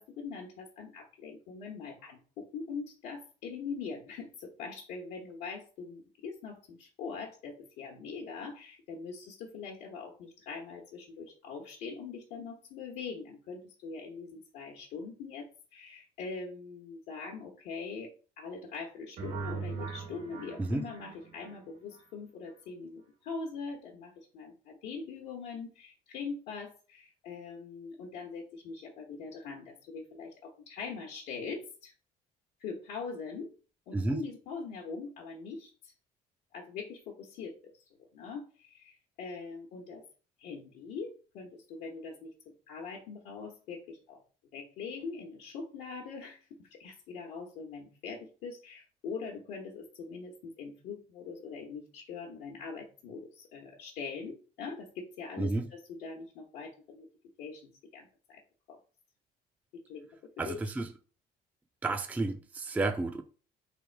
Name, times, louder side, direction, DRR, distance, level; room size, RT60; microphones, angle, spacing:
voice 1, 0.0-31.9 32.6-33.5 33.9-35.9 36.5-37.8 38.1-40.0 40.4-44.2 44.5-57.1 57.4-58.4 58.7-58.8 59.7-60.1 60.5-60.6, left 5 dB, 85° left, 1.0 m, -42 dB
sound 1, 19.2-22.0, right 5 dB, 75° right, 1.4 m, -41 dB
voice 2, 33.9-34.2 55.4-55.7 60.4-60.9 61.8-63.2, right 2 dB, 10° right, 0.4 m, -31 dB
3.4 x 2.5 x 4.4 m
cardioid pair, 110°, 17 cm